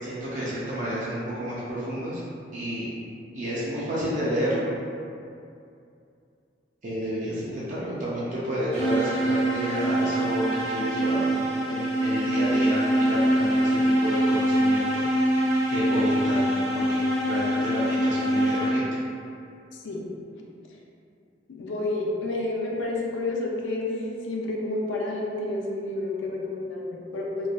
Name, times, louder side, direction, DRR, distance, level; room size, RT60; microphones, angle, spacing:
voice 1, 0.0-2.2 2.5-2.9 3.3-4.7 6.8-15.3 15.7-19.0, equal, 45° right, -9 dB, 0.4 m, -30 dB
sound 1, 8.7-19.1, right 1 dB, 75° right, 1.1 m, -24 dB
voice 2, 19.7-20.1 21.5-27.5, left 2 dB, 70° left, -2 dB, 0.4 m, -30 dB
3.0 x 2.5 x 2.3 m, 2.5 s
head